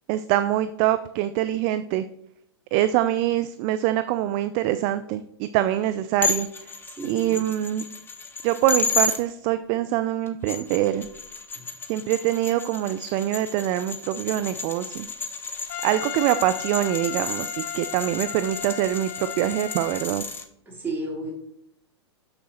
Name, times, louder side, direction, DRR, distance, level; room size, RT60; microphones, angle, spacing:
voice 1, 0.1-2.0 2.7-6.5 7.0-7.8 8.4-11.1 11.9-15.1 15.8-20.3, right 13 dB, 35° right, 12 dB, 0.4 m, -24 dB
sound 1, 6.2-9.2 10.3-20.4, left 4 dB, 15° left, 0.8 m, -32 dB
voice 2, 6.9-7.4 11.5-11.7 20.7-21.3, right 2 dB, 15° right, -3 dB, 2.9 m, -33 dB
Trumpet, 15.7-20.1, left 12 dB, 40° left, 0.5 m, -36 dB
6.5 x 6.5 x 4.3 m, 0.74 s
hypercardioid pair, 110°, 14 cm